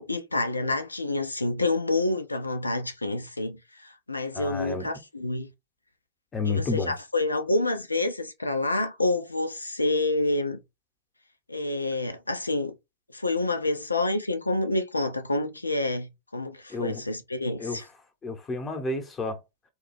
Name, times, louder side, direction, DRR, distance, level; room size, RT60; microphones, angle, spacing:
voice 1, 0.0-5.5 6.4-10.6 11.5-12.7 13.1-17.8, left 2 dB, 80° left, 0.5 m, -28 dB
voice 2, 4.3-4.9 6.3-6.9 16.7-17.0 17.6-17.8 18.2-19.4, left 3 dB, 20° left, 1.0 m, -30 dB
3.4 x 2.3 x 3.3 m
figure-of-eight pair, 90°, 0 cm